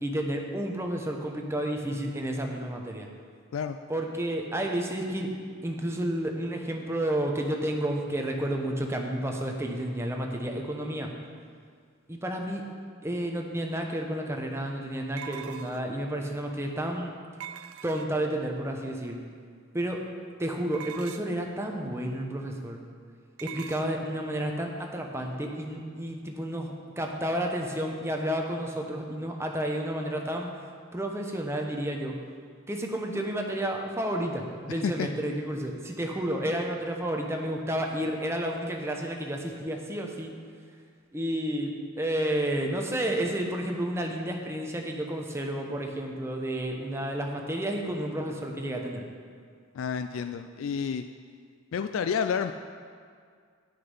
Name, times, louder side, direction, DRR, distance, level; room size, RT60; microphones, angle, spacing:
voice 1, 0.0-3.1 3.9-5.3 5.6-11.1 12.1-12.6 13.0-17.1 17.8-19.2 19.7-20.0 20.4-22.8 23.4-30.6 30.9-32.2 32.7-40.3 41.1-49.0, right 1 dB, 10° right, 2 dB, 0.9 m, -31 dB
sound 1, 13.6-13.7 15.2-16.0 17.4-18.3 20.7-21.5 23.4-23.9, right 9 dB, 85° right, 0.4 m, -42 dB
voice 2, 49.7-51.0 51.7-52.5, left 6 dB, 65° left, 8 dB, 0.3 m, -29 dB
10.0 x 6.6 x 5.5 m, 2.1 s
head